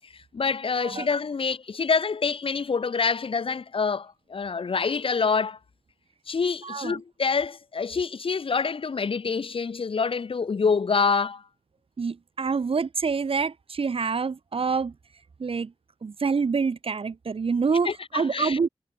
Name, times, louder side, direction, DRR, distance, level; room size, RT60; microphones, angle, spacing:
voice 1, 0.1-5.6 6.3-11.4 17.9-18.6, left 5 dB, 70° left, 1.7 m, -26 dB
voice 2, 6.6-7.0 12.0-14.9 15.4-15.7 16.0-18.7, right 5 dB, 75° right, 5.9 m, -26 dB
cardioid pair, 50°, 10 cm